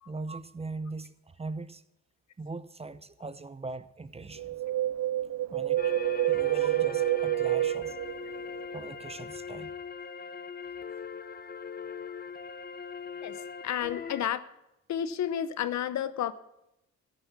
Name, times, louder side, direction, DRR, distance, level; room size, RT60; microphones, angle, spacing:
voice 1, 0.1-1.8 2.4-4.6 5.5-5.9 6.3-8.0 8.7-9.7, right 3 dB, 20° right, 14 dB, 0.8 m, -40 dB
Wind, 4.4-8.7 9.0-9.1, right 14 dB, 60° right, 0.4 m, -28 dB
sound 1, 5.8-14.2, left 6 dB, 30° left, 0.9 m, -41 dB
voice 2, 13.2-14.4 14.9-16.3, left 10 dB, 65° left, 14 dB, 0.9 m, -32 dB
14.0 x 10.5 x 6.0 m, 0.86 s
cardioid pair, 90°, 30 cm